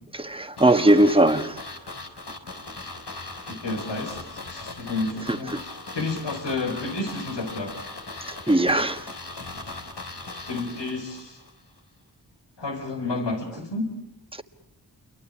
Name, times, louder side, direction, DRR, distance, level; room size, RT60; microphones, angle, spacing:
voice 1, 0.2-1.6 8.5-9.0, right 1 dB, 15° right, 1.5 m, -19 dB
sound 1, 0.6-11.5 11.8-11.9, left 3 dB, 70° left, 4.3 m, -39 dB
voice 2, 3.5-4.2 4.5-7.8 10.5-11.4 12.6-13.9, left 3 dB, 85° left, 5.1 m, -30 dB
28.0 x 23.5 x 8.4 m
cardioid pair, 55°, 42 cm